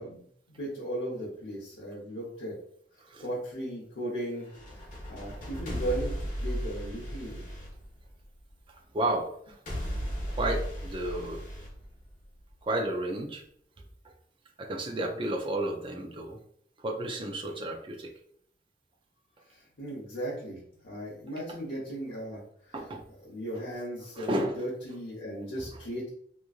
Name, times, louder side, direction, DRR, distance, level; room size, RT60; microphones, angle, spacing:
voice 1, 0.0-2.5 3.2-4.5 5.1-7.4 19.5-22.7 23.2-26.1, right 1 dB, 85° left, -7 dB, 0.8 m, -37 dB
sound 1, 4.4-8.5 9.7-12.5, equal, 50° left, 1.1 m, -36 dB
voice 2, 8.7-9.6 10.3-11.4 12.6-13.4 14.6-16.4 16.8-18.1 22.7-23.0 24.2-24.6, right 1 dB, 30° right, 1 dB, 0.4 m, -32 dB
3.0 x 2.4 x 2.4 m, 0.66 s
head